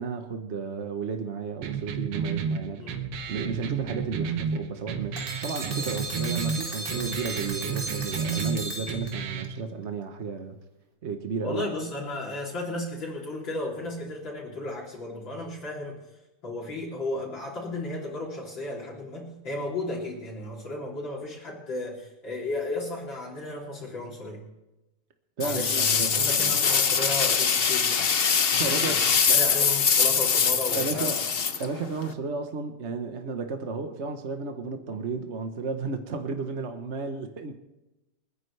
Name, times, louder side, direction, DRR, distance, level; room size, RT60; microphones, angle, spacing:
voice 1, 0.0-2.9 3.3-10.6 11.0-11.7 25.4-26.6 28.5-29.7 30.7-31.2 31.6-37.6, right 4 dB, 45° right, 6 dB, 1.0 m, -33 dB
sound 1, 1.6-9.6, right 6 dB, 80° right, 1.9 m, -32 dB
sound 2, 5.2-9.5, right 2 dB, 25° right, 2.0 m, -35 dB
voice 2, 11.4-15.9 16.4-24.4 25.4-28.0 28.6-31.2, left 2 dB, 60° left, -6 dB, 4.0 m, -34 dB
sound 3, 25.4-32.1, left 6 dB, 75° left, 0.5 m, -23 dB
29.5 x 10.0 x 3.3 m, 0.98 s
omnidirectional pair, 2.3 m